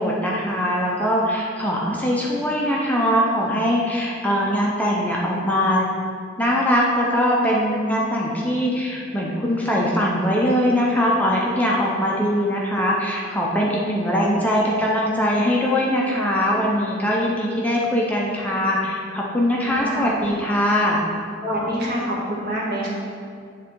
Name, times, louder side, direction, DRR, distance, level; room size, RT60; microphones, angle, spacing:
voice 1, 0.0-5.9 6.4-21.0, equal, 10° left, -4 dB, 0.6 m, -21 dB
voice 2, 19.6-20.2 21.4-22.9, equal, 55° right, -5 dB, 1.6 m, -26 dB
8.2 x 3.6 x 4.6 m, 2.2 s
head